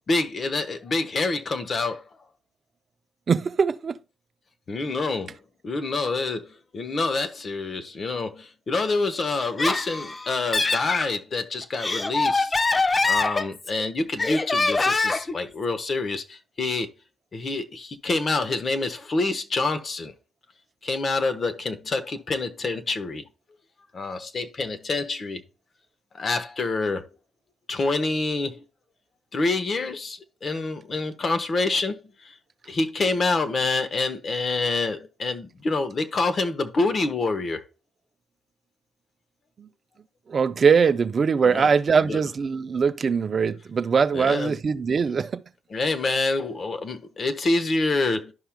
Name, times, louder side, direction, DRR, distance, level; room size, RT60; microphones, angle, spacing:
voice 1, 0.1-2.0 4.7-5.4 5.6-16.9 17.3-20.1 20.8-23.3 23.9-25.4 26.1-27.1 27.7-28.6 29.3-32.4 32.7-37.6 41.4-41.7 42.0-42.2 44.1-44.5 45.7-48.3, left 3 dB, 45° left, 1.0 m, -27 dB
voice 2, 3.3-4.0 39.6-39.7 40.3-45.4, right 6 dB, 50° right, 0.4 m, -22 dB
Laughter, 9.4-11.1 11.6-13.8 14.2-15.3, left 3 dB, 30° left, 0.6 m, -24 dB
11.5 x 5.6 x 2.2 m
hypercardioid pair, 45°, 0 cm